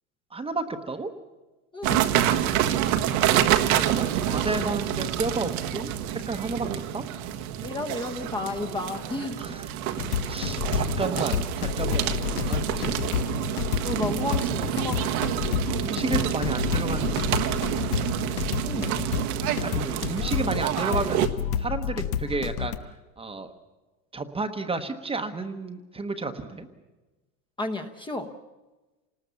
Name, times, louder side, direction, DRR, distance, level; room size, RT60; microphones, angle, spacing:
voice 1, 0.3-1.1 3.7-6.7 6.9-7.0 9.4-9.7 10.2-12.9 15.8-18.0 18.6-18.7 19.5-21.3 21.6-22.7 23.2-23.5 24.1-26.7, right 3 dB, 10° right, 7 dB, 1.1 m, -32 dB
voice 2, 1.7-2.1 7.6-9.4 13.8-15.1 18.6-19.0 27.6-28.3, left 2 dB, 10° left, 4 dB, 1.0 m, -32 dB
sound 1, 1.8-21.3, right 11 dB, 70° right, 1.6 m, -27 dB
sound 2, 10.0-22.8, left 8 dB, 80° left, 1.4 m, -29 dB
27.5 x 19.5 x 7.0 m, 1.1 s
supercardioid pair, 135°, 44 cm